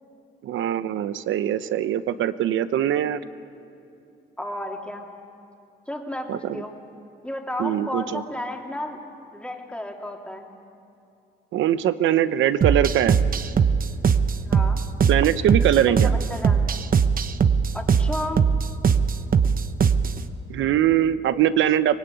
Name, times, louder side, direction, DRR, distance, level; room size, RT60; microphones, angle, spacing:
voice 1, 0.4-3.2 6.3-6.6 7.6-8.2 11.5-13.2 15.1-16.1 20.5-22.0, right 11 dB, 80° right, 13 dB, 0.9 m, -22 dB
voice 2, 4.4-5.0 5.9-6.7 7.2-9.0 9.3-10.5 14.4-14.8 15.6-16.6 17.7-18.5, left 1 dB, 5° left, 1 dB, 3.2 m, -33 dB
sound 1, 12.6-20.2, right 6 dB, 45° right, 1.0 m, -21 dB
24.0 x 19.0 x 9.2 m, 2.5 s
cardioid pair, 90°, 20 cm